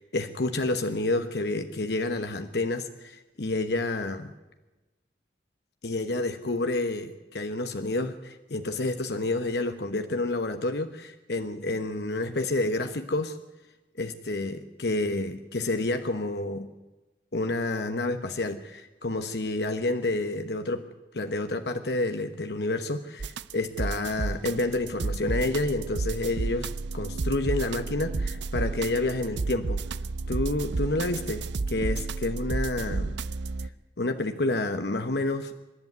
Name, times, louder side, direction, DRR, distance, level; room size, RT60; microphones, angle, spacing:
voice 1, 0.0-4.3 5.8-13.4 14.0-16.7 17.3-20.8 21.1-29.8 30.3-33.2 34.0-35.5, left 2 dB, 70° left, 7 dB, 1.1 m, -29 dB
sound 1, 23.2-33.7, right 3 dB, 85° right, 0.6 m, -31 dB
25.5 x 11.0 x 9.5 m, 1.1 s
head